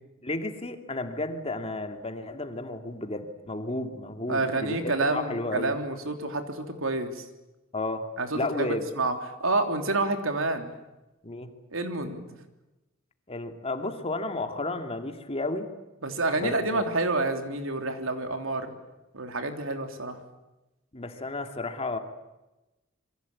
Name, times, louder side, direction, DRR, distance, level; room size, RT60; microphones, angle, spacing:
voice 1, 0.2-5.8 7.7-8.1 8.3-8.8 11.2-11.5 13.3-15.7 16.4-16.9 20.9-22.0, left 2 dB, 30° left, 6 dB, 2.5 m, -32 dB
voice 2, 4.3-7.2 8.2-9.1 9.4-10.8 11.7-12.2 16.0-18.7 19.1-20.2, right 2 dB, 80° right, 6 dB, 3.3 m, -28 dB
27.5 x 23.0 x 8.6 m, 0.99 s
head